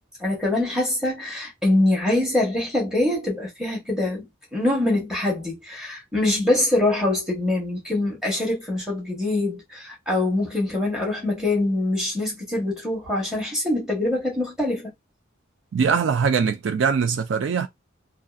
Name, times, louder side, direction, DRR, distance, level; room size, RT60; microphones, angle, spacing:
voice 1, 0.2-14.9, left 2 dB, 5° right, 1.0 m, -24 dB
voice 2, 15.7-17.7, right 6 dB, 65° right, 0.3 m, -22 dB
2.7 x 2.3 x 2.3 m
head